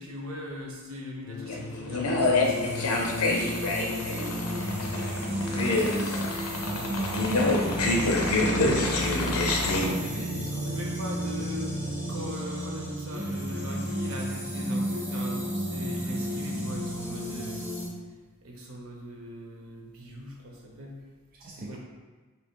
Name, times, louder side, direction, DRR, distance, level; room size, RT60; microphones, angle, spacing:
voice 1, 0.0-4.5 5.3-6.0 8.6-8.9 9.9-17.7 18.4-21.0 21.5-21.8, equal, 70° right, -1 dB, 0.9 m, -40 dB
sound 1, 1.2-4.7 7.6-12.7, left 1 dB, 45° left, 0.4 m, -41 dB
sound 2, 1.5-9.9, left 2 dB, 90° left, 0.7 m, -27 dB
sound 3, 2.4-17.9, equal, 5° right, 0.8 m, -32 dB
voice 2, 6.5-7.5 8.1-8.7 9.8-10.2 21.4-21.8, right 2 dB, 40° right, -5 dB, 0.5 m, -39 dB
4.8 x 2.8 x 3.7 m, 1.3 s
head